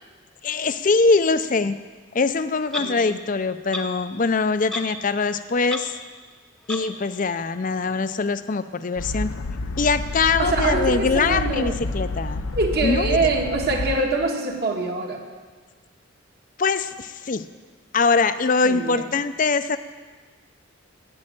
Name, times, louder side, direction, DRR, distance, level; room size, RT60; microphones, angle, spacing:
voice 1, 0.4-1.8 2.1-5.9 6.7-9.3 9.8-12.4 12.8-13.2 16.6-17.4 17.9-19.8, left 4 dB, 40° left, 12 dB, 0.5 m, -22 dB
Clock, 2.7-2.9 3.7-3.8 4.7-4.9 5.2-5.3 5.7-5.8 6.7-6.8, left 2 dB, 5° left, 0.9 m, -30 dB
voice 2, 2.8-3.2 10.4-11.8 12.5-15.2 18.6-19.0, right 3 dB, 50° right, 1 dB, 1.6 m, -24 dB
sound 1, 9.0-14.0, left 2 dB, 80° left, 0.7 m, -29 dB
11.0 x 8.7 x 8.7 m, 1.4 s
head